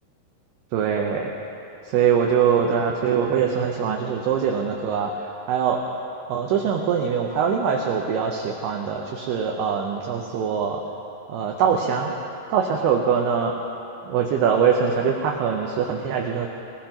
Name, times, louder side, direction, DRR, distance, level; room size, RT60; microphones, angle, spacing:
voice 1, 0.7-1.3 1.8-5.8 6.3-10.8 11.3-12.1 12.5-13.5 14.0-16.5, right 7 dB, 75° right, 1 dB, 2.5 m, -23 dB
25.5 x 17.5 x 3.0 m, 2.8 s
omnidirectional pair, 5.5 m